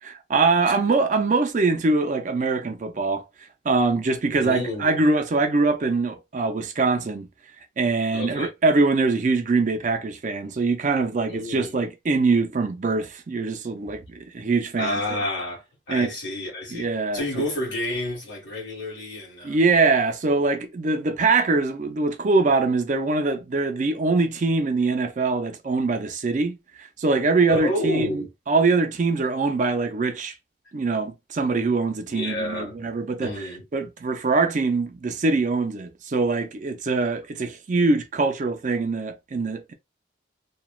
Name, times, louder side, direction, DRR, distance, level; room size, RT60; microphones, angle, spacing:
voice 1, 0.0-3.2 3.6-7.3 7.8-15.0 15.9-16.1 16.7-17.4 19.4-30.3 30.7-39.7, right 3 dB, 40° right, 0.4 m, -23 dB
voice 2, 4.3-5.0 8.1-8.5 11.3-11.8 14.8-16.9 17.1-19.6 27.5-28.3 32.0-32.8 33.2-33.6, left 1 dB, 75° left, 1.6 m, -30 dB
3.0 x 2.2 x 2.3 m
head